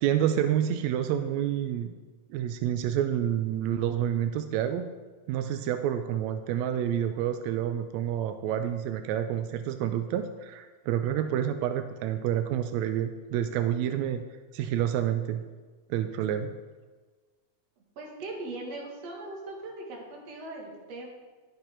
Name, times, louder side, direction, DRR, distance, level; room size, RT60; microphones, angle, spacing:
voice 1, 0.0-1.9 2.3-4.9 5.3-14.2 14.5-15.4 15.9-16.5, right 10 dB, 85° right, 8 dB, 1.6 m, -28 dB
voice 2, 18.0-21.1, right 2 dB, 55° right, -1 dB, 2.7 m, -39 dB
11.5 x 6.5 x 4.4 m, 1.3 s
omnidirectional pair, 3.6 m